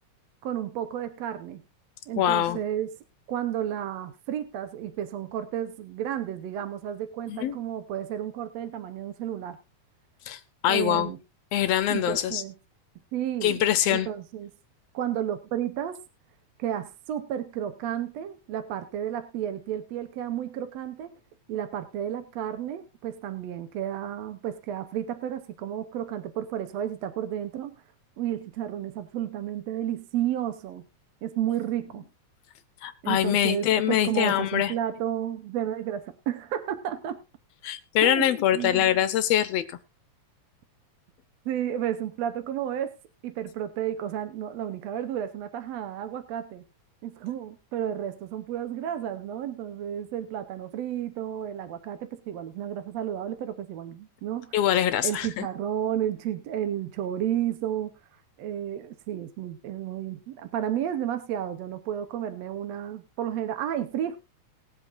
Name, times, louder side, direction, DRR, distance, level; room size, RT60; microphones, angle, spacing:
voice 1, 0.4-1.6 2.1-2.9 3.3-9.6 10.7-11.2 11.9-12.6 13.1-13.6 13.9-14.5 14.9-16.0 16.6-21.2 21.5-27.8 28.2-30.8 31.2-32.0 33.0-37.2 38.0-38.9 41.5-42.9 43.2-46.6 47.0-54.5 55.0-57.9 58.4-64.2, right 10 dB, 70° right, 9 dB, 1.9 m, -32 dB
voice 2, 2.2-2.6 7.3-7.6 10.3-11.1 11.5-12.4 13.4-14.1 32.8-34.7 37.6-39.6 54.5-55.5, left 11 dB, 75° left, 12 dB, 1.7 m, -24 dB
20.5 x 7.9 x 2.5 m, 0.26 s
omnidirectional pair, 3.4 m